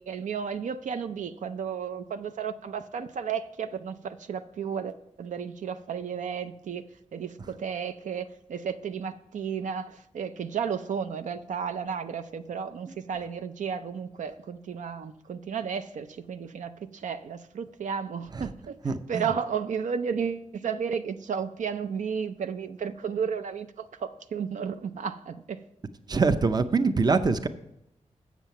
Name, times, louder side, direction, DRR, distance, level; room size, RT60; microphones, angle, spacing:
voice 1, 0.0-6.8 7.1-18.8 19.1-25.6, right 7 dB, 80° right, 10 dB, 0.5 m, -33 dB
voice 2, 18.8-19.3 26.1-27.5, right 4 dB, 35° right, 11 dB, 0.5 m, -24 dB
7.5 x 7.1 x 5.6 m, 0.82 s
wide cardioid pair, 95°, 13 cm